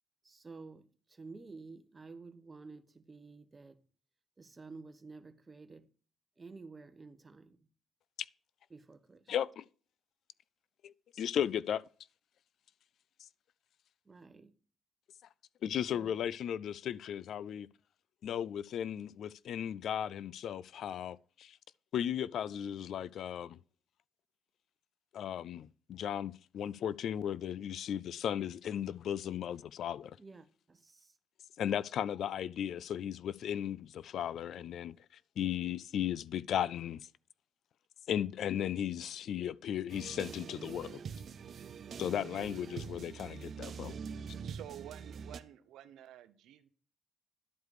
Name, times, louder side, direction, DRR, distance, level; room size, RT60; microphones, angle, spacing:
voice 1, 0.2-3.8 4.4-5.9 6.4-7.7 8.7-9.3 14.0-14.6 15.9-16.3 30.2-31.2, right 4 dB, 25° right, 1.1 m, -52 dB
voice 2, 9.3-9.6 10.8-11.8 15.6-17.7 18.2-21.6 21.9-23.6 25.1-30.2 31.6-35.0 35.4-37.1 38.1-41.0 42.0-44.0, left 9 dB, 70° left, 0.4 m, -36 dB
sound 1, 39.9-45.4, right 6 dB, 55° right, 0.6 m, -44 dB
voice 3, 44.4-46.7, right 12 dB, 85° right, 0.9 m, -50 dB
11.5 x 4.8 x 6.5 m
cardioid pair, 90°, 0 cm